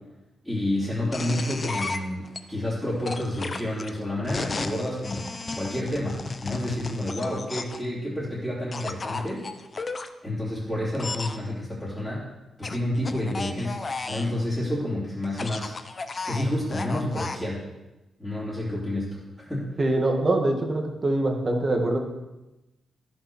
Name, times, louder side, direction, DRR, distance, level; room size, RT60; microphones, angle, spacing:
voice 1, 0.4-5.3 5.5-9.5 10.2-12.3 12.6-13.8 14.1-15.7 16.3-17.7 18.2-19.8, left 1 dB, ahead, -10 dB, 3.1 m, -29 dB
sound 1, 1.1-2.4 3.0-7.9 8.7-10.1 10.9-11.4 12.6-14.3 15.2-17.4, left 3 dB, 25° left, 0.7 m, -34 dB
voice 2, 19.8-22.0, right 2 dB, 25° right, 2 dB, 1.8 m, -24 dB
14.5 x 6.3 x 6.3 m, 1.0 s
wide cardioid pair, 170°, 0 cm